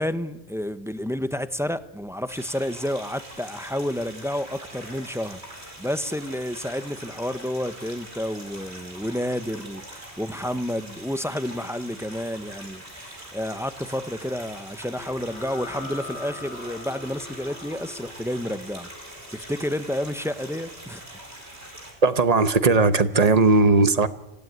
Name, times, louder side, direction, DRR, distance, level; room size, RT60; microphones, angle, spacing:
voice 1, 0.0-21.0, equal, 5° right, 0.8 m, -30 dB
sound 1, 2.3-21.9, right 1 dB, 90° right, 5.2 m, -43 dB
sound 2, 15.0-22.2, left 2 dB, 90° left, 3.7 m, -44 dB
voice 2, 22.0-24.1, right 3 dB, 40° right, 1.1 m, -18 dB
27.0 x 16.0 x 9.5 m
omnidirectional pair, 1.1 m